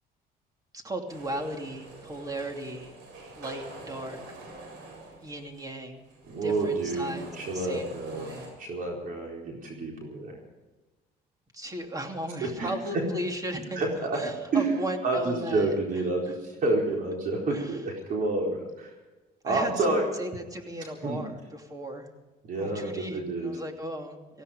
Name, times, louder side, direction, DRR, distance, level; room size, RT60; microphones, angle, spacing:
voice 1, 0.7-2.9 3.3-4.4 5.2-6.0 6.4-8.5 11.5-16.0 16.3-16.4 17.5-17.8 19.4-22.1 22.6-24.4, right 1 dB, 20° right, 4 dB, 2.8 m, -36 dB
sound 1, 1.1-8.5, right 2 dB, 90° right, 7.2 m, -46 dB
voice 2, 6.2-8.3 8.6-10.4 12.4-12.7 13.8-14.2 14.5-14.6 15.0-18.9 19.4-20.0 21.0-21.2 22.5-23.6, right 2 dB, 55° right, 0 dB, 4.3 m, -29 dB
18.0 x 16.0 x 5.1 m, 1.2 s
cardioid pair, 110°, 17 cm